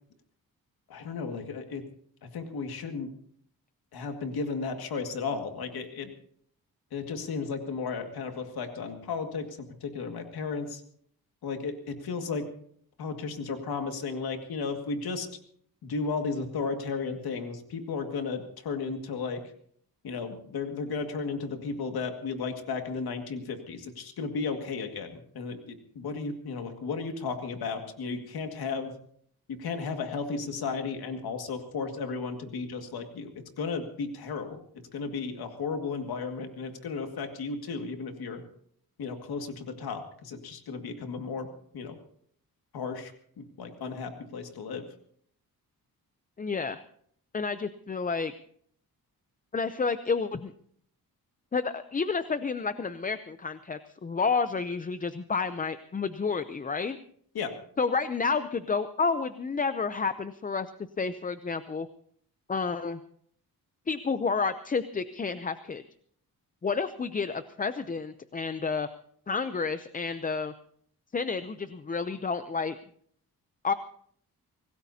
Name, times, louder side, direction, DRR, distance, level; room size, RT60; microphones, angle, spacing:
voice 1, 0.9-1.8 2.3-3.1 3.9-6.1 6.9-10.8 11.4-12.5 13.0-15.3 15.8-19.4 20.0-28.9 29.5-34.6 34.9-38.4 39.0-41.5 41.7-42.0 42.7-43.1 43.4-44.9 57.3-57.5, left 4 dB, 80° left, 5 dB, 2.1 m, -34 dB
voice 2, 46.4-46.8 47.3-48.3 49.5-50.5 51.5-57.0 57.8-60.7 61.0-61.9 62.5-63.0 63.9-65.8 66.6-68.9 69.3-70.5 71.1-72.8 73.6-73.7, left 5 dB, 25° left, 11 dB, 0.5 m, -30 dB
25.0 x 18.0 x 2.8 m, 0.62 s
wide cardioid pair, 130°, 37 cm